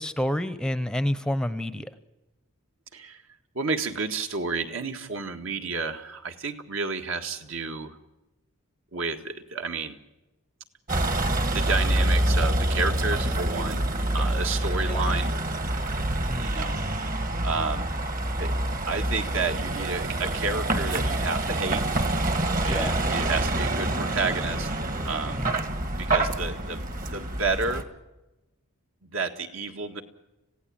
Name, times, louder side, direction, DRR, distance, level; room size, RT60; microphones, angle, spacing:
voice 1, 0.0-1.9 14.9-15.0 16.3-16.6 22.7-23.0 25.4-25.6, left 1 dB, 5° left, 12 dB, 0.7 m, -29 dB
voice 2, 2.9-3.2 3.5-8.0 8.9-10.0 11.5-13.8 14.1-15.3 16.3-16.8 17.4-17.9 18.4-18.5 18.9-21.8 22.6-24.7 25.0-25.4 26.0-26.8 27.1-27.9 29.0-30.0, right 4 dB, 65° right, 5 dB, 1.9 m, -30 dB
Vehicle, 10.9-27.8, right 1 dB, 40° right, 1.6 m, -26 dB
26.5 x 16.5 x 8.9 m, 1.0 s
head